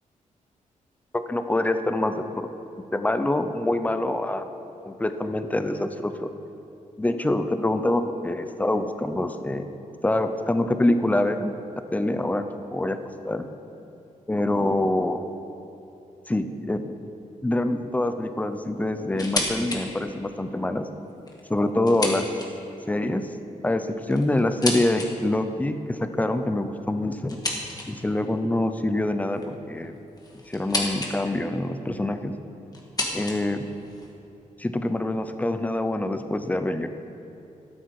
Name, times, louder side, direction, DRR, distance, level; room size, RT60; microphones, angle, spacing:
voice 1, 1.1-2.5 2.9-4.5 4.8-6.3 7.0-9.6 10.0-11.5 11.9-13.0 13.2-13.5 14.3-15.2 16.3-16.9 17.4-20.9 21.5-22.3 22.9-23.3 23.6-27.4 27.9-30.0 30.5-32.3 33.1-33.7 34.6-36.9, left 1 dB, 10° left, 9 dB, 0.6 m, -25 dB
sound 1, 19.2-19.8 20.2-20.3 21.1-22.8 23.7-25.1 27.3-28.1 29.4-31.2 31.4-32.0 32.7-34.2, left 2 dB, 30° left, 1.7 m, -32 dB
13.0 x 11.5 x 4.8 m, 2.9 s
wide cardioid pair, 135°, 14 cm